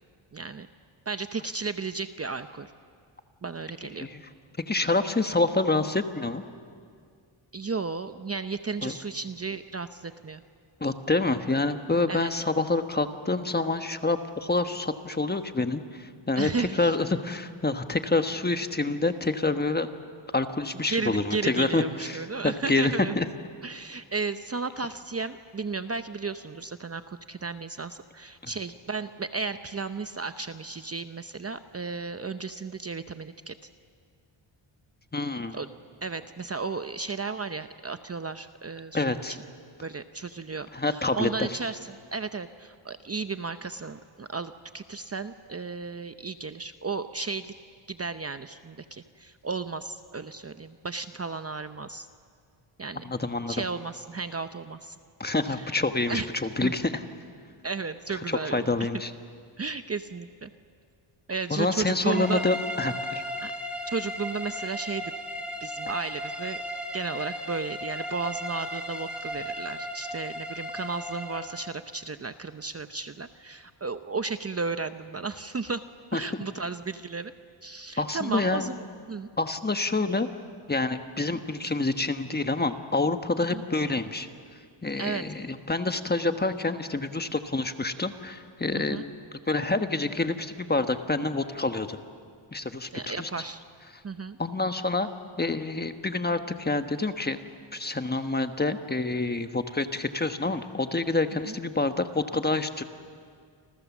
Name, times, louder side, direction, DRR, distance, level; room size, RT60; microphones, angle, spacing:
voice 1, 0.3-0.7 1.1-2.7 3.4-4.1 7.5-10.4 12.1-12.3 16.4-17.0 20.7-23.1 23.6-33.5 35.5-35.7 36.0-39.4 39.8-47.5 47.9-52.1 52.8-53.0 53.5-55.0 55.4-55.8 56.1-56.3 56.6-56.7 57.6-58.9 59.6-60.5 61.3-62.4 63.4-63.5 63.9-65.1 65.6-66.6 66.9-75.8 76.1-77.3 77.6-78.8 79.1-79.3 83.5-83.6 85.0-85.2 88.7-89.0 92.9-93.6 94.0-94.4 101.5-101.6, right 4 dB, 30° right, 10 dB, 0.8 m, -34 dB
voice 2, 4.7-6.4 8.8-8.9 10.8-19.9 20.3-23.3 28.4-28.5 35.1-35.6 38.9-39.3 40.7-41.6 53.0-53.6 55.2-57.0 58.1-59.1 61.5-63.2 76.1-76.4 78.0-78.7 79.4-80.3 80.7-84.3 84.8-89.1 89.5-92.0 92.5-93.3 94.4-95.1 95.4-97.4 97.7-102.8, left 3 dB, 20° left, 8 dB, 1.3 m, -27 dB
sound 1, 62.1-71.6, equal, ahead, 3.7 m, -35 dB
29.5 x 26.5 x 7.3 m, 2.2 s
wide cardioid pair, 110°, 49 cm